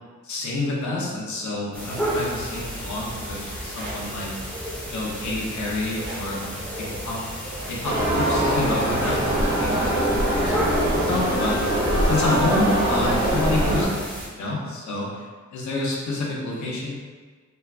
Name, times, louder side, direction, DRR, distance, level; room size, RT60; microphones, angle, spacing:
voice 1, 0.2-4.3 4.9-7.2 7.7-11.6 12.0-15.3 15.5-16.9, left 2 dB, 80° left, -4 dB, 0.6 m, -28 dB
sound 1, 1.7-14.3, equal, 5° left, 0.7 m, -32 dB
sound 2, 3.7-4.0 6.0-6.3 7.6-8.0 9.0-9.3 10.7-10.9, right 1 dB, 35° right, 0.6 m, -36 dB
sound 3, 7.8-13.9, right 1 dB, 70° right, 0.9 m, -23 dB
2.5 x 2.2 x 2.3 m, 1.4 s
wide cardioid pair, 130°, 29 cm